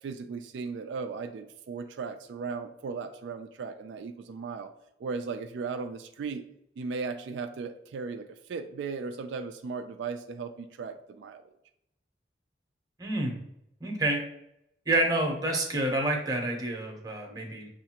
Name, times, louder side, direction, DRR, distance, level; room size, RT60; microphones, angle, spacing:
voice 1, 0.0-4.7 5.0-6.4 6.8-11.4, right 4 dB, 80° right, 7 dB, 0.3 m, -36 dB
voice 2, 13.0-13.4 13.8-14.2 14.9-17.7, right 1 dB, 20° right, 2 dB, 0.7 m, -28 dB
6.4 x 2.4 x 2.8 m, 0.79 s
head